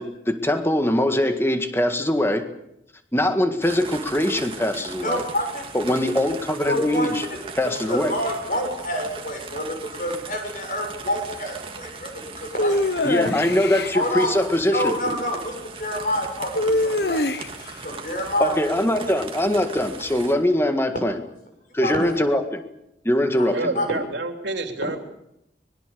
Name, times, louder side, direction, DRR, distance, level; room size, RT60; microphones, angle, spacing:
voice 1, 0.0-2.5 3.1-5.2 5.7-7.2 7.6-8.1 13.0-14.9 18.4-21.2 21.7-22.6 23.0-23.9, left 1 dB, 15° left, 7 dB, 1.8 m, -22 dB
sound 1, 3.6-20.3, right 4 dB, 30° right, 2.2 m, -39 dB
voice 2, 5.0-5.6 6.7-7.4 7.9-12.9 13.9-14.3 14.7-18.6 21.8-21.9 23.4-23.5 23.7-23.9, left 1 dB, 45° left, 3 dB, 7.2 m, -28 dB
sound 2, 12.6-14.0 16.5-17.7, left 2 dB, 70° left, 1.3 m, -23 dB
voice 3, 23.5-25.0, right 2 dB, 90° right, 5 dB, 3.3 m, -28 dB
25.0 x 21.5 x 6.9 m, 0.83 s
head